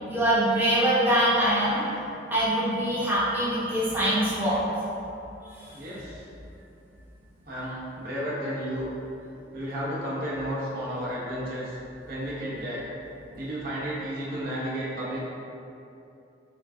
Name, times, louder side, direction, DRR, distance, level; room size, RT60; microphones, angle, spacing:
voice 1, 0.1-1.8 2.3-4.6, right 1 dB, 10° right, -10 dB, 0.8 m, -23 dB
voice 2, 5.7-6.2 7.5-8.9 9.5-11.8 12.1-12.9 13.3-15.2, equal, 55° right, -7 dB, 0.9 m, -32 dB
3.7 x 2.2 x 3.6 m, 2.8 s
head